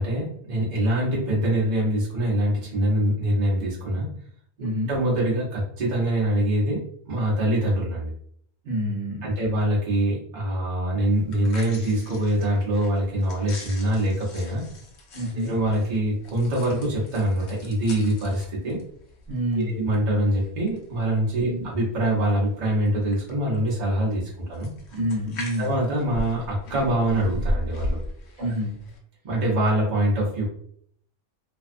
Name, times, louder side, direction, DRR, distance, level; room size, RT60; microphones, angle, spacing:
voice 1, 0.0-4.1 4.6-8.1 9.2-14.6 15.3-18.8 19.7-24.7 25.6-28.0 29.2-30.5, right 1 dB, 45° right, -5 dB, 0.8 m, -24 dB
voice 2, 4.6-4.9 8.6-9.3 15.1-15.5 19.3-19.8 21.4-21.7 24.9-25.8 28.4-28.8, equal, 65° right, -3 dB, 1.1 m, -28 dB
sound 1, 11.2-29.0, left 1 dB, 75° left, 0.9 m, -38 dB
2.5 x 2.3 x 2.4 m, 0.64 s
omnidirectional pair, 1.2 m